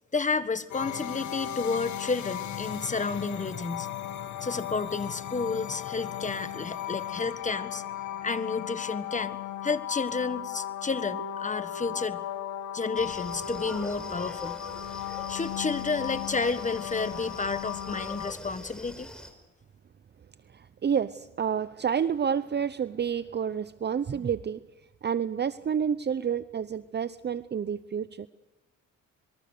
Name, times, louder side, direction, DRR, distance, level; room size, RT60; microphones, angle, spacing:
voice 1, 0.1-3.9 4.4-7.8 8.2-9.4 9.6-12.2 12.7-14.6 15.3-19.1, left 4 dB, 25° left, 12 dB, 1.6 m, -31 dB
sound 1, 0.7-18.3, left 11 dB, 70° left, 1.9 m, -36 dB
sound 2, 12.9-19.3, equal, 5° left, 5.3 m, -44 dB
voice 2, 20.5-24.6 25.0-28.3, right 7 dB, 35° right, 14 dB, 0.7 m, -29 dB
27.0 x 21.0 x 6.7 m, 1.1 s
cardioid pair, 90°, 30 cm